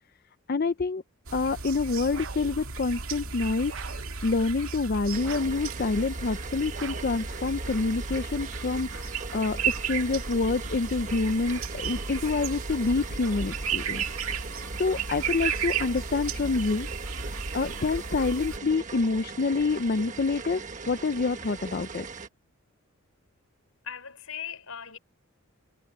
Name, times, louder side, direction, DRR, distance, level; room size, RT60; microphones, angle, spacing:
voice 1, 0.5-1.0 1.3-9.6 9.8-14.0 14.8-16.9 17.5-20.6 20.9-22.1, left 3 dB, 45° left, 0.5 m, -27 dB
sound 1, 1.3-18.6, right 5 dB, 90° right, 2.1 m, -34 dB
sound 2, 2.1-2.6 3.7-4.1 5.2-5.7 6.7-7.2, right 6 dB, 60° right, 0.6 m, -42 dB
sound 3, 5.1-22.3, right 4 dB, 35° right, 1.4 m, -41 dB
voice 2, 23.8-25.0, left 8 dB, 90° left, 4.7 m, -38 dB
head